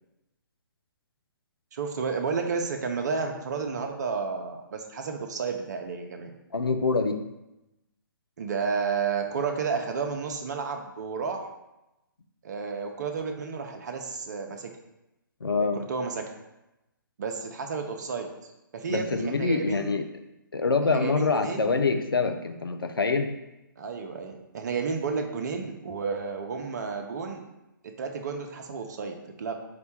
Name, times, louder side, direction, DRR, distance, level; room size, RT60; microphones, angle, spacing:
voice 1, 1.7-6.3 8.4-11.5 12.4-14.7 15.6-16.2 17.2-18.3 18.7-19.9 20.9-21.7 23.8-27.4 28.0-29.5, right 5 dB, 50° right, 4 dB, 0.5 m, -31 dB
voice 2, 6.5-7.3 15.4-15.8 18.9-20.1 20.5-23.3, left 4 dB, 90° left, 7 dB, 0.4 m, -25 dB
4.2 x 2.2 x 4.2 m, 0.93 s
figure-of-eight pair, 135°, 12 cm